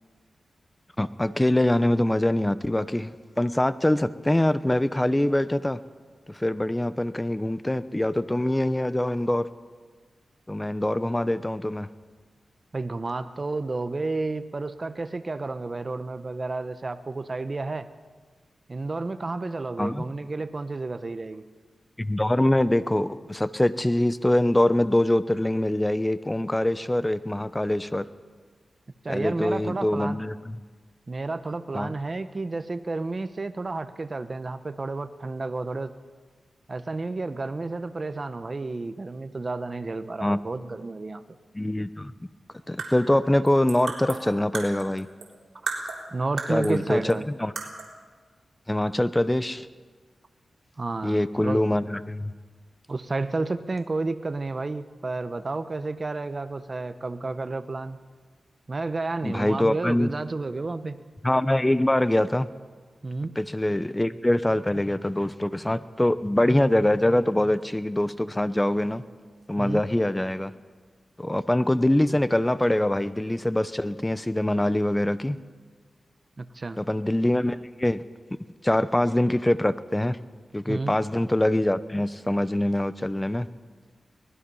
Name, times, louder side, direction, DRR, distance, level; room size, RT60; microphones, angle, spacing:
voice 1, 1.0-3.1 3.4-5.8 6.3-9.5 10.5-11.9 19.8-20.1 22.0-28.1 29.1-30.3 31.7-31.9 40.2-40.4 41.5-42.1 42.7-45.1 46.5-47.1 47.4-47.5 48.7-49.7 51.0-52.3 59.2-60.1 61.2-62.5 63.4-69.0 69.5-70.5 71.2-75.4 76.8-78.0 78.6-80.2 80.5-83.5, left 1 dB, 15° left, 14 dB, 0.8 m, -24 dB
voice 2, 12.7-17.9 18.7-21.4 29.0-30.2 31.1-35.9 36.7-41.2 46.1-47.2 50.8-51.6 52.9-58.0 58.7-61.0 63.0-63.3 69.6-69.8 76.4-76.8 80.7-81.0, right 3 dB, 40° right, 11 dB, 1.1 m, -31 dB
sound 1, 42.6-45.3 45.7-46.8 47.1-47.2 47.6-48.0, right 4 dB, 80° right, 3.7 m, -35 dB
24.0 x 19.5 x 5.6 m, 1.5 s
cardioid pair, 75°, 0 cm